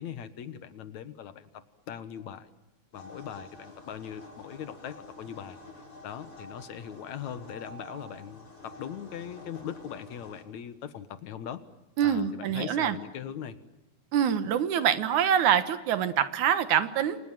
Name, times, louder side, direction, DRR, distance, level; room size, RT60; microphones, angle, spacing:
voice 1, 0.0-2.5 2.9-5.6 6.0-11.6 12.0-13.6, left 9 dB, 70° left, 12 dB, 2.7 m, -40 dB
sound 1, 2.9-10.4, left 1 dB, 45° left, 6.8 m, -49 dB
voice 2, 12.0-13.0 14.1-17.2, right 9 dB, 80° right, 12 dB, 2.8 m, -25 dB
29.5 x 25.5 x 7.5 m, 1.0 s
omnidirectional pair, 3.4 m